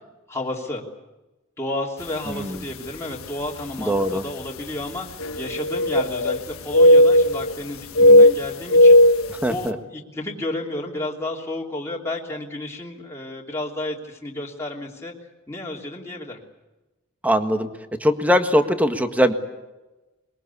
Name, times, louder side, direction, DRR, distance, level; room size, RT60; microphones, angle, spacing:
voice 1, 0.3-0.8 1.6-9.0 9.5-15.1 15.5-16.4, left 2 dB, 15° left, -3 dB, 3.1 m, -31 dB
sound 1, 2.3-2.4 3.2-3.3 5.2-6.4 6.7-7.6 8.0-9.3, left 1 dB, 75° left, 1.5 m, -14 dB
voice 2, 2.3-2.6 3.8-4.2 8.1-8.3 9.4-9.8 17.2-17.7 18.0-19.3, equal, 5° right, 7 dB, 1.6 m, -21 dB
22.5 x 22.5 x 8.5 m, 1.1 s
head